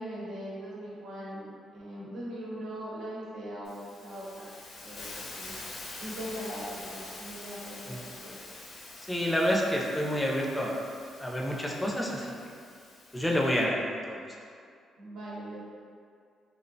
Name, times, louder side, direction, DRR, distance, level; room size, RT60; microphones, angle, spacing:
voice 1, 0.0-4.5 4.8-5.5 6.0-8.4 15.0-15.7, equal, 80° right, -7 dB, 0.8 m, -40 dB
Hiss, 3.6-13.6, left 2 dB, 65° left, 0.5 m, -46 dB
voice 2, 9.1-10.8 11.2-12.3 13.1-14.2, equal, 5° left, -2 dB, 0.4 m, -28 dB
2.6 x 2.0 x 2.6 m, 2.3 s
cardioid pair, 90°, 0 cm